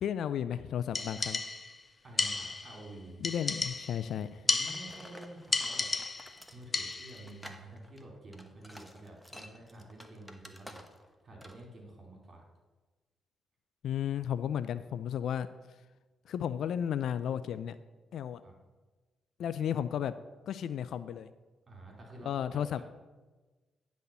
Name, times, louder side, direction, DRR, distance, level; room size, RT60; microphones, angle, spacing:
voice 1, 0.0-1.4 3.2-4.4 13.8-15.5 16.3-17.7 18.1-18.4 19.4-20.1 20.5-21.3 22.3-22.8, left 9 dB, 75° left, 13 dB, 0.3 m, -33 dB
sound 1, 0.9-1.8 2.2-2.8 3.2-4.1 4.5-5.1 5.5-6.4 6.7-7.2, left 3 dB, 35° left, 0.7 m, -33 dB
voice 2, 2.0-3.2 4.4-5.9 6.5-10.8 11.2-12.4 18.4-18.5 21.7-22.8, right 1 dB, 45° right, 0 dB, 3.1 m, -49 dB
sound 2, 4.6-11.1 11.4-11.7, equal, 5° left, 1.0 m, -51 dB
9.8 x 4.2 x 6.8 m, 1.2 s
cardioid pair, 65°, 0 cm